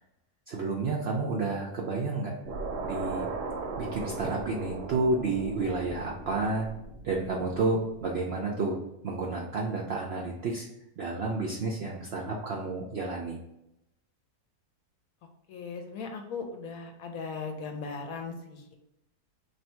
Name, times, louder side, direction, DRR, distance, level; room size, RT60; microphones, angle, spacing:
voice 1, 0.5-2.3 2.8-3.3 3.8-6.7 7.0-8.8 9.0-10.7 11.0-13.4, right 3 dB, 70° right, -1 dB, 0.6 m, -30 dB
sound 1, 2.5-7.7, right 3 dB, 90° right, 1.2 m, -37 dB
voice 2, 15.5-18.7, left 4 dB, 70° left, 4 dB, 0.9 m, -38 dB
3.3 x 2.6 x 4.3 m, 0.84 s
omnidirectional pair, 1.7 m